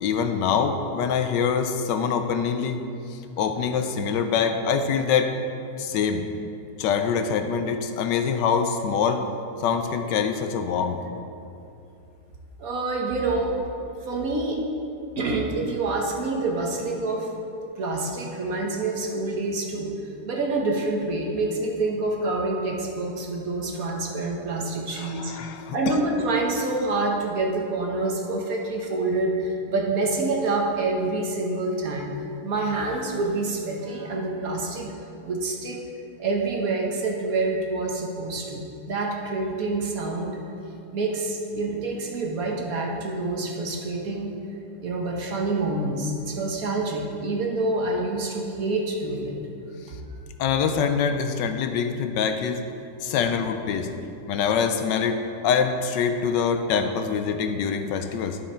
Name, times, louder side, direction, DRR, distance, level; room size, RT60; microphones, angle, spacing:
voice 1, 0.0-2.8 3.1-5.3 5.8-6.2 6.8-9.2 9.6-11.0 24.9-25.9 50.4-52.6 53.0-53.9 54.3-58.4, left 6 dB, 80° left, 7 dB, 1.2 m, -24 dB
voice 2, 12.6-13.5 14.1-14.6 15.2-17.3 17.8-19.9 20.2-25.3 25.7-32.1 32.4-34.9 35.2-35.8 36.2-40.4 40.9-44.3 44.8-49.3 49.9-50.0, right 2 dB, 55° right, 0 dB, 1.3 m, -27 dB
11.0 x 6.4 x 4.4 m, 2.7 s
omnidirectional pair, 2.0 m